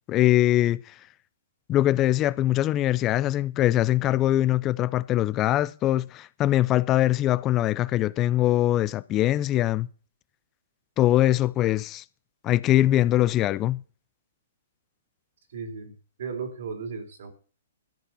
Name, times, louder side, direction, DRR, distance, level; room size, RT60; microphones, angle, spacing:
voice 1, 0.1-0.8 1.7-9.9 11.0-12.0 12.4-13.8, left 14 dB, 30° left, 0.5 m, -22 dB
voice 2, 15.5-17.3, right 5 dB, 65° right, 3.4 m, -36 dB
13.5 x 8.2 x 5.6 m
hypercardioid pair, 125°, 0 cm